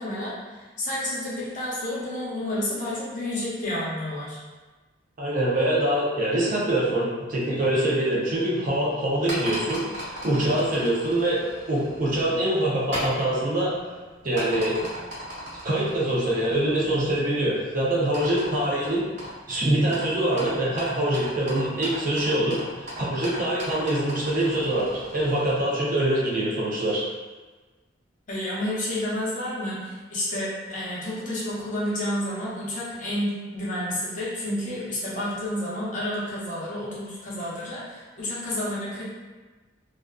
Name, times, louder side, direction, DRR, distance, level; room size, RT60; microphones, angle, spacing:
voice 1, 0.0-4.4 28.3-39.0, left 1 dB, 40° left, -8 dB, 0.7 m, -30 dB
voice 2, 5.2-11.4 11.7-13.7 14.2-14.8 15.6-19.0 19.5-27.1, right 1 dB, 45° right, -5 dB, 0.5 m, -24 dB
sound 1, 9.1-25.5, equal, 90° right, 1.2 m, -38 dB
2.4 x 2.4 x 2.2 m, 1.3 s
head